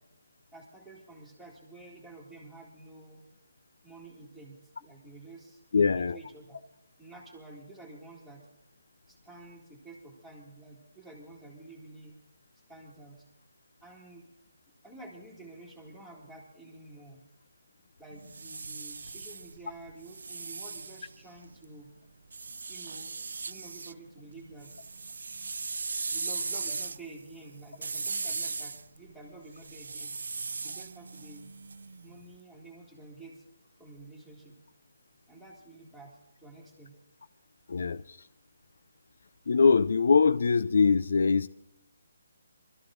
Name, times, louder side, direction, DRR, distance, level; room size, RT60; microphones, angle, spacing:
voice 1, 0.5-3.2 3.8-6.6 7.0-8.4 9.1-12.2 12.7-13.2 13.8-14.3 14.8-17.2 18.0-21.9 22.7-24.7 26.1-30.2 30.6-31.5 32.0-33.4 33.8-34.6 35.3-36.1 36.4-37.0, right 2 dB, ahead, 2.0 m, -50 dB
voice 2, 5.7-6.2 37.7-38.2 39.5-41.5, left 5 dB, 55° left, 0.4 m, -23 dB
sound 1, 18.1-21.6 22.3-24.0 24.3-32.2, right 4 dB, 70° right, 0.5 m, -38 dB
25.5 x 13.5 x 2.5 m
hypercardioid pair, 175°, 0 cm